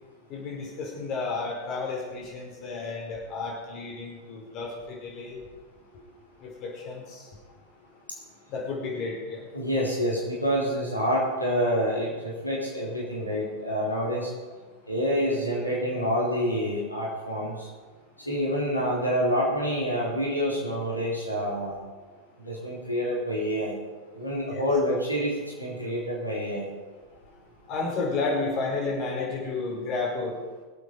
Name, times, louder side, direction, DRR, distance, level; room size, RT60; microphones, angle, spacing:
voice 1, 0.3-5.4 6.4-7.3 8.5-9.5 24.5-24.7 27.7-30.4, left 3 dB, 40° left, -2 dB, 4.9 m, -32 dB
voice 2, 9.5-14.3 14.9-17.7 18.3-21.8 22.4-23.8 24.1-26.7, equal, 90° left, -5 dB, 3.7 m, -27 dB
24.5 x 8.2 x 4.8 m, 1.4 s
figure-of-eight pair, 90°, 0 cm